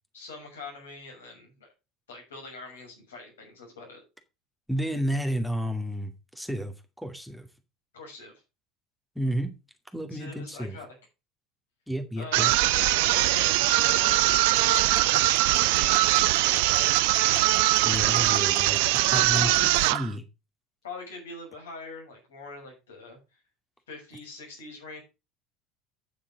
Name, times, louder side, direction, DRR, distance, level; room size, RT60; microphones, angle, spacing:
voice 1, 0.1-1.7 2.1-4.0 7.9-8.3 10.1-10.9 12.2-15.4 15.7-17.1 18.0-18.5 19.2-19.6 20.8-23.2 23.9-25.0, left 3 dB, 85° left, 6.6 m, -43 dB
voice 2, 4.7-7.5 9.2-9.5 9.9-10.8 11.9-12.5 17.8-20.2, equal, ahead, 2.3 m, -31 dB
sound 1, 12.3-20.1, right 17 dB, 70° right, 0.7 m, -22 dB
sound 2, 14.5-20.0, left 3 dB, 40° left, 3.3 m, -42 dB
10.0 x 7.1 x 5.3 m
hypercardioid pair, 70°, 0 cm